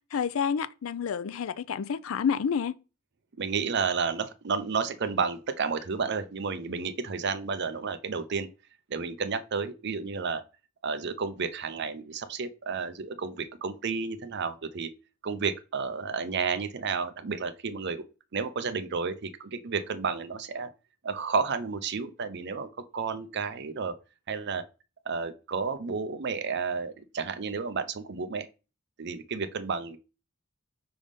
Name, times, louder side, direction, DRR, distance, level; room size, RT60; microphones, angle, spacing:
voice 1, 0.1-2.7, left 7 dB, 85° left, 0.4 m, -29 dB
voice 2, 3.4-8.5 8.9-10.4 10.8-14.9 15.2-18.1 18.3-20.7 21.0-23.9 24.3-24.6 25.1-28.5 29.0-30.0, right 5 dB, 60° right, 0.6 m, -31 dB
5.2 x 3.5 x 5.1 m
head